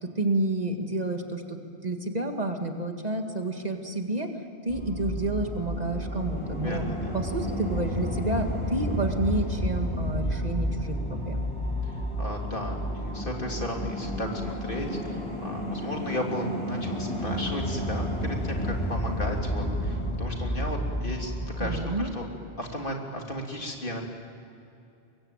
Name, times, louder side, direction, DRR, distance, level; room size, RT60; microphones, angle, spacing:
voice 1, 0.0-1.6 1.8-4.3 4.6-6.9 7.1-11.5 21.6-22.1, right 2 dB, 40° right, 4 dB, 2.1 m, -30 dB
sound 1, 4.7-21.8, equal, 30° left, 5.2 m, -31 dB
voice 2, 6.6-7.2 12.2-22.3 22.6-24.0, equal, 55° left, 1 dB, 3.3 m, -34 dB
24.0 x 22.5 x 9.0 m, 2.6 s
omnidirectional pair, 1.1 m